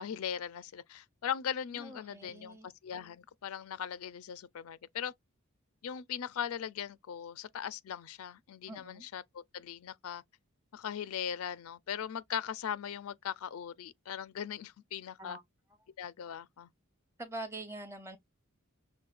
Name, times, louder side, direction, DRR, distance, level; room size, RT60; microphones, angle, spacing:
voice 1, 0.0-5.1 5.8-10.2 10.7-15.4 16.0-16.7, left 8 dB, 80° left, 0.4 m, -39 dB
voice 2, 1.7-2.7 8.7-9.1 15.2-15.4 17.2-18.2, right 2 dB, 10° right, 0.7 m, -44 dB
6.3 x 2.2 x 2.4 m
head